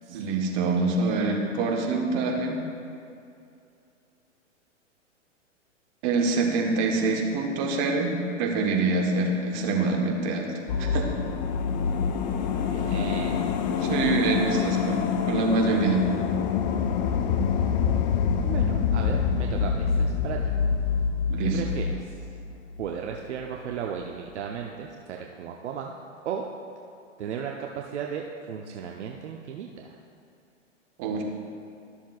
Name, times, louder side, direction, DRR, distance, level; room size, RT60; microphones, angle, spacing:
voice 1, 0.1-2.6 6.0-10.5 10.8-11.1 13.8-16.1 21.3-21.6 31.0-31.2, right 3 dB, 40° right, 1 dB, 1.3 m, -25 dB
sound 1, 10.7-23.1 23.4-23.5, left 6 dB, 35° left, 0.5 m, -26 dB
voice 2, 12.6-13.6 18.4-20.5 21.4-22.0 22.8-25.9 26.2-26.4 27.2-30.0, right 7 dB, 65° right, 1 dB, 0.7 m, -35 dB
12.5 x 7.1 x 2.4 m, 2.5 s
hypercardioid pair, 120°, 37 cm